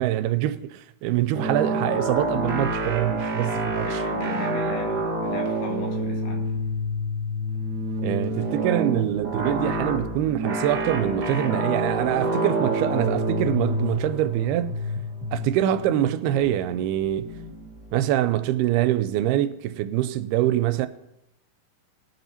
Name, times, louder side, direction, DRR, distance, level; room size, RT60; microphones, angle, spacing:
voice 1, 0.0-4.0 8.0-14.7 15.3-17.3 17.9-20.9, right 13 dB, 85° right, 2.5 m, -24 dB
sound 1, 1.3-17.9, right 1 dB, 60° right, 1.0 m, -28 dB
voice 2, 3.8-6.5, left 3 dB, 75° left, 3.9 m, -36 dB
20.5 x 6.9 x 4.3 m
omnidirectional pair, 4.5 m